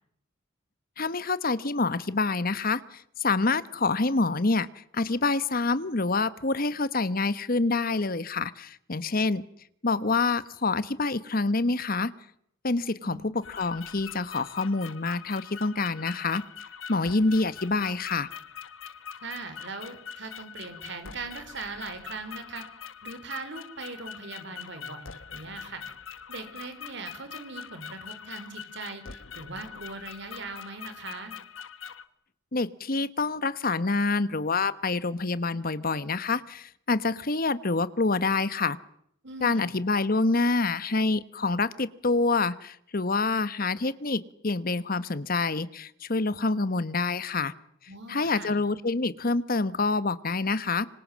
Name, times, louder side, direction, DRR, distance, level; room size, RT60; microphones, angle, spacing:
voice 1, 1.0-9.4 9.8-12.1 12.6-16.4 16.9-18.3 32.5-38.8 39.4-47.5 48.1-50.9, left 3 dB, 45° left, 15 dB, 1.2 m, -27 dB
sound 1, 13.4-32.0, left 7 dB, 70° left, 1.5 m, -43 dB
voice 2, 19.2-22.7 23.0-25.8 26.3-31.4 39.2-39.8 47.9-48.6, right 3 dB, 60° right, 9 dB, 4.3 m, -40 dB
26.0 x 25.5 x 7.5 m, 0.71 s
head